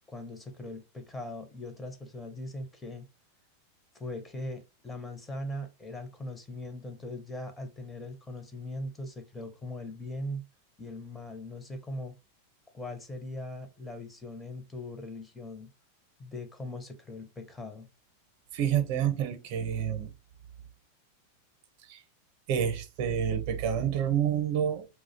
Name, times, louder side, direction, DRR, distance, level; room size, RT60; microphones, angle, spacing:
voice 1, 0.1-3.1 3.9-10.5 10.8-12.1 12.7-15.7 16.2-17.9, left 1 dB, 15° left, 0.5 m, -40 dB
voice 2, 18.5-20.1 21.9-22.0 22.5-24.9, right 9 dB, 60° right, 0.6 m, -28 dB
2.3 x 2.0 x 2.6 m
hypercardioid pair, 100°, 0 cm